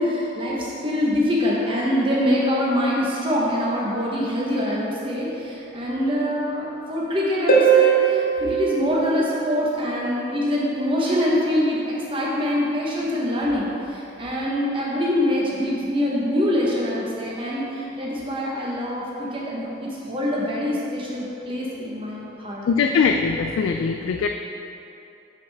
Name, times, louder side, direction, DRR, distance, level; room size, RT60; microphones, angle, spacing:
voice 1, 0.0-11.8 12.1-22.7, left 1 dB, 25° right, -5 dB, 1.0 m, -24 dB
Harp, 7.5-10.0 13.5-13.6, right 7 dB, 45° left, 0.8 m, -20 dB
voice 2, 22.7-24.3, left 5 dB, 85° left, 4 dB, 0.3 m, -21 dB
6.4 x 5.8 x 3.4 m, 2.9 s
head